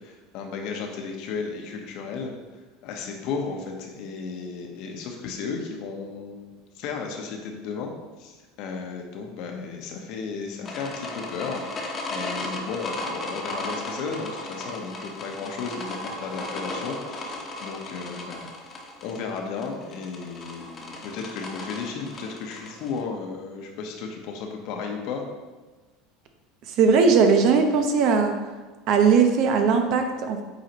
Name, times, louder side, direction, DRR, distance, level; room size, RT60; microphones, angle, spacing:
voice 1, 0.0-2.3 2.8-6.5 6.7-7.9 8.2-25.3, left 5 dB, 60° left, 3 dB, 1.0 m, -34 dB
sound 1, 10.7-23.0, left 2 dB, 30° left, 1.1 m, -36 dB
voice 2, 26.8-28.4 28.9-30.4, right 5 dB, 55° right, 5 dB, 0.8 m, -19 dB
8.0 x 4.1 x 3.0 m, 1.3 s
supercardioid pair, 120°, 0 cm